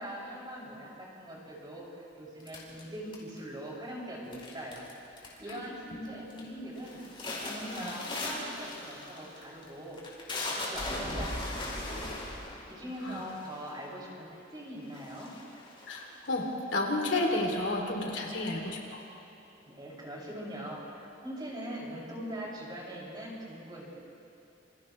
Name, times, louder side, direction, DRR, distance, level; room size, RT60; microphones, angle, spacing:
voice 1, 0.0-4.9 5.4-7.0 7.4-12.2 12.7-15.3 19.7-23.8, equal, 25° right, -5 dB, 6.2 m, -42 dB
sound 1, 2.5-3.6 4.3-4.9 5.2-5.7 6.1-6.4 6.8-13.8 14.5-14.6 14.9-16.5, left 2 dB, 30° left, 5.1 m, -38 dB
voice 2, 7.6-7.9 13.0-13.2 15.9-19.0, left 2 dB, 70° left, 0 dB, 2.8 m, -32 dB
29.0 x 28.0 x 3.2 m, 2.9 s
head